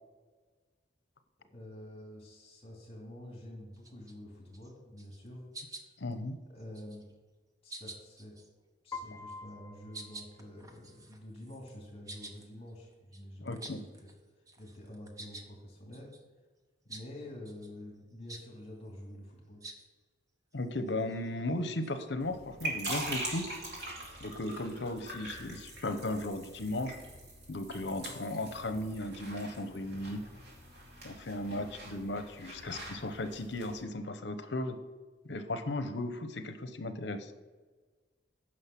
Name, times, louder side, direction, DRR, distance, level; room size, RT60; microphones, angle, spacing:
voice 1, 1.5-5.4 6.5-7.1 7.6-8.4 8.8-14.1 14.6-16.1 16.8-19.6, left 1 dB, 30° left, -2 dB, 2.6 m, -48 dB
sound 1, 3.7-4.1 4.5-4.7 5.0-5.3 5.5-6.1 6.6-7.1 7.7-8.5 9.3-9.5 9.9-14.2 14.5-15.5 15.9-16.2 16.9-17.1 17.4-17.7 18.3-18.5 19.6-19.9 20.5-22.1, right 2 dB, 20° right, 0.8 m, -49 dB
voice 2, 6.0-6.4 13.4-13.8 20.5-23.5 24.2-27.0 27.5-30.2 31.0-34.8 35.2-37.3, left 1 dB, 65° left, 9 dB, 0.9 m, -36 dB
Piano, 8.9-11.0, left 4 dB, 15° left, 0.5 m, -46 dB
sound 2, 22.2-33.8, right 1 dB, 60° right, 2.8 m, -43 dB
9.7 x 6.3 x 5.9 m, 1.3 s
head